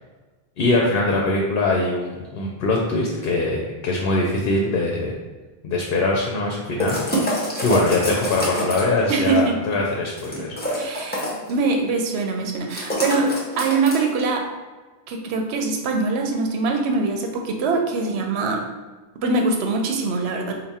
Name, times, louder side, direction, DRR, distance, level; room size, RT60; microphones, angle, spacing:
voice 1, 0.6-5.2 5.6-7.0 7.6-10.5, left 2 dB, 65° left, -1 dB, 0.7 m, -22 dB
sound 1, 6.8-9.0 10.2-11.5 12.7-14.2, equal, 10° left, 0.6 m, -26 dB
voice 2, 9.1-9.6 10.7-14.5 15.1-18.6 19.2-20.5, right 3 dB, 85° right, 3 dB, 0.8 m, -23 dB
3.5 x 2.1 x 4.1 m, 1.3 s
omnidirectional pair, 1.1 m